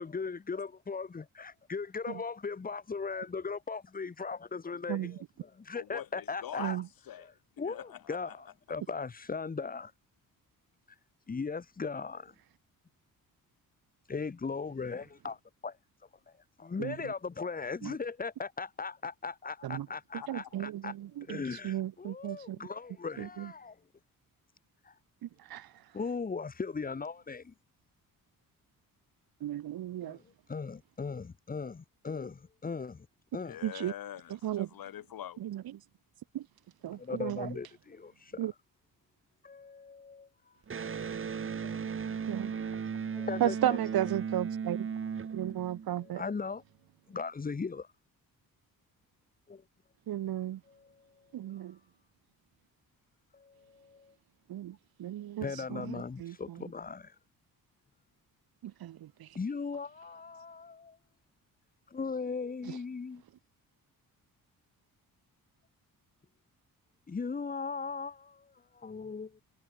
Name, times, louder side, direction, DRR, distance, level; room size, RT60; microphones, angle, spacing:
voice 1, 0.0-6.8 7.2-7.3 7.6-9.9 11.3-12.3 14.1-15.4 15.6-15.8 16.6-20.9 21.3-23.7 25.9-27.5 30.0-33.1 33.3-33.6 36.9-38.5 39.4-40.3 41.6-41.8 43.1-43.8 45.9-46.6 47.1-47.9 49.5-49.6 50.7-51.1 53.3-54.1 55.4-57.1 59.3-61.0 61.9-63.2 67.1-69.4, left 4 dB, 25° left, 2.8 m, -38 dB
voice 2, 5.7-6.7 7.1-7.3 7.6-8.4 20.1-20.3 33.4-35.4, left 11 dB, 75° left, 5.5 m, -44 dB
voice 3, 20.3-22.6 23.2-23.5 25.4-25.7 29.4-30.2 33.6-33.9 34.4-34.7 35.4-35.6 36.3-36.4 36.8-37.5 38.4-38.5 42.3-42.5 43.4-44.9 45.3-46.2 50.1-50.6 51.3-51.8 54.5-56.3 58.6-59.4 62.7-62.8, right 12 dB, 85° right, 2.6 m, -34 dB
Electric guitar, 40.7-46.2, right 6 dB, 35° right, 3.5 m, -36 dB
wide cardioid pair, 170°, 35 cm